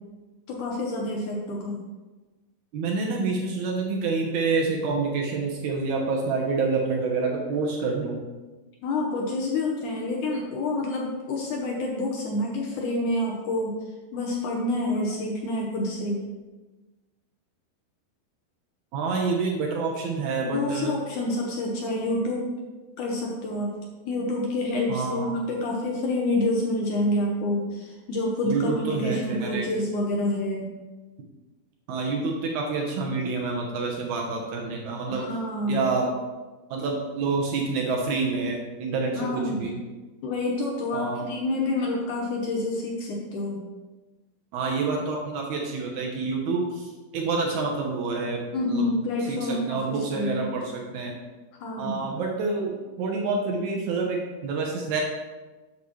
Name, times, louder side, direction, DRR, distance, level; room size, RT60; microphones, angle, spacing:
voice 1, 0.5-1.8 8.8-13.8 14.1-16.2 20.4-22.5 23.0-23.7 24.1-30.7 35.1-35.8 39.1-39.7 40.2-43.6 48.5-50.5 51.6-52.0, left 2 dB, 70° left, -1 dB, 2.0 m, -28 dB
voice 2, 2.7-8.2 18.9-20.9 24.9-25.4 28.5-29.7 31.9-35.2 35.7-36.1 36.7-39.8 40.9-41.3 44.5-48.4 48.7-48.9 49.3-51.1 51.8-55.0, right 4 dB, 80° right, 0 dB, 1.7 m, -28 dB
8.4 x 6.9 x 3.1 m, 1.2 s
omnidirectional pair, 4.6 m